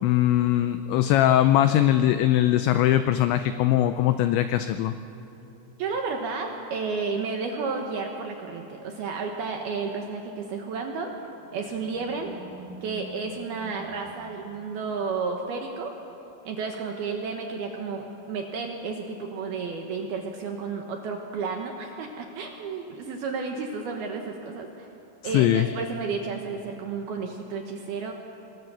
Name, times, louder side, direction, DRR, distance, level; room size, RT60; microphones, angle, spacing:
voice 1, 0.0-4.9 25.2-25.7, left 12 dB, 85° left, 10 dB, 2.5 m, -21 dB
voice 2, 5.8-11.1 11.5-12.3 12.8-15.9 16.4-24.9 25.2-28.1, right 4 dB, 70° right, 3 dB, 2.5 m, -32 dB
Animal, 10.9-15.3, right 2 dB, 70° left, 9.5 m, -46 dB
26.5 x 22.0 x 6.9 m, 2.9 s
omnidirectional pair, 5.9 m